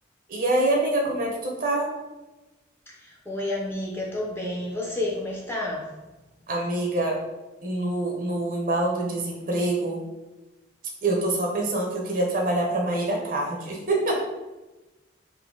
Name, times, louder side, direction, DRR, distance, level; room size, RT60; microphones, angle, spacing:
voice 1, 0.3-1.9 6.5-7.2 7.6-10.0 11.0-14.1, right 2 dB, 45° right, 0 dB, 0.7 m, -25 dB
voice 2, 2.9-5.9, left 1 dB, 10° left, -3 dB, 0.6 m, -30 dB
3.8 x 2.7 x 3.7 m, 1.1 s
head